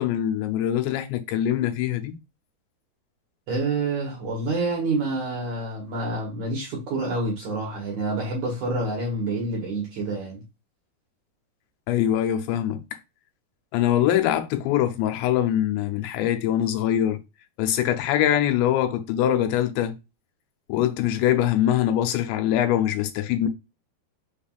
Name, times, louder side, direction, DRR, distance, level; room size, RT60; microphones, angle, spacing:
voice 1, 0.0-2.2 11.9-12.8 13.7-17.2 17.6-20.0 20.7-23.5, left 11 dB, 90° left, 3.0 m, -23 dB
voice 2, 3.5-10.4, right 2 dB, 60° right, 2.1 m, -27 dB
6.4 x 3.5 x 2.4 m
omnidirectional pair, 4.9 m